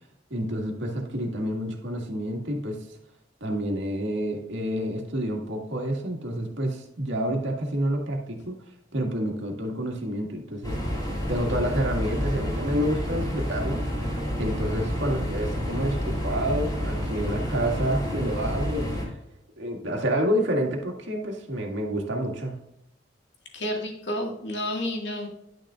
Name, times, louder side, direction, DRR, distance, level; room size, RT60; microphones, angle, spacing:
voice 1, 0.3-2.9 3.4-8.6 8.9-11.0 11.3-14.1 14.4-19.1 19.6-22.6, equal, 80° right, 1 dB, 1.8 m, -29 dB
sound 1, 10.6-19.1, equal, 20° left, 2.9 m, -29 dB
voice 2, 23.5-25.3, left 1 dB, 70° left, 1 dB, 1.9 m, -30 dB
10.5 x 6.3 x 2.4 m, 0.84 s
head